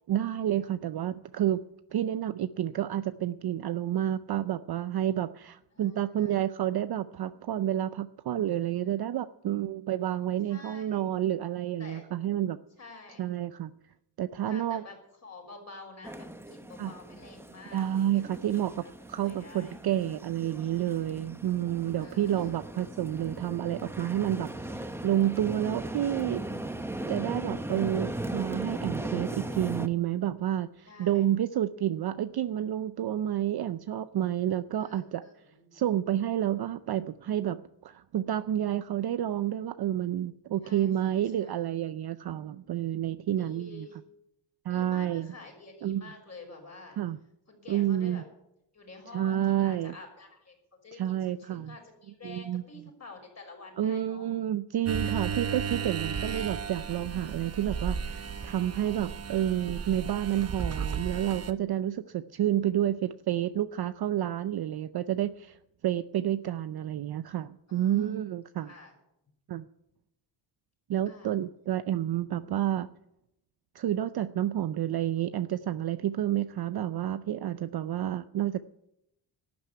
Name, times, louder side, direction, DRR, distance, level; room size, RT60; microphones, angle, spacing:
voice 1, 0.1-1.6 1.9-12.6 13.2-13.7 14.2-14.8 16.8-16.9 17.7-18.7 19.1-26.4 27.1-35.2 35.7-43.9 44.7-45.3 45.8-46.0 47.0-47.2 47.7-48.2 49.1-49.9 51.0-51.8 52.2-52.6 53.8-68.7 69.5-69.7 70.9-72.9 73.7-78.6, right 11 dB, 50° right, 12 dB, 0.6 m, -30 dB
voice 2, 5.7-6.4 8.8-9.2 10.4-11.1 11.8-12.0 12.8-13.2 14.5-15.0 15.2-18.9 19.2-19.7 22.0-22.5 30.9-31.2 34.8-35.8 40.6-41.6 43.4-44.0 44.7-47.0 47.5-48.2 48.7-50.6 50.8-54.3 55.0-55.6 67.7-68.1 68.6-68.9 71.1-71.3, left 3 dB, 30° left, 2 dB, 5.8 m, -49 dB
sound 1, 16.0-29.9, right 1 dB, 5° right, 0.8 m, -38 dB
sound 2, 54.9-61.5, right 6 dB, 30° right, 0.9 m, -34 dB
12.5 x 9.4 x 9.6 m, 0.83 s
cardioid pair, 120°, 48 cm